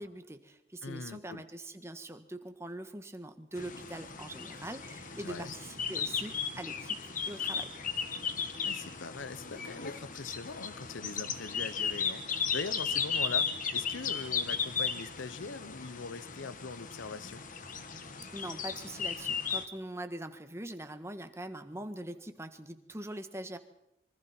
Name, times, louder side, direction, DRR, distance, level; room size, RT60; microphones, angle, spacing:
voice 1, 0.0-7.0 7.2-7.7 18.3-23.6, right 1 dB, 15° right, 8 dB, 1.5 m, -43 dB
voice 2, 0.8-1.4 5.2-5.5 8.2-8.3 8.6-17.4, left 4 dB, 80° left, 16 dB, 0.8 m, -42 dB
sound 1, 3.5-19.6, left 6 dB, 45° left, 1.6 m, -36 dB
26.0 x 24.5 x 4.4 m, 0.84 s
head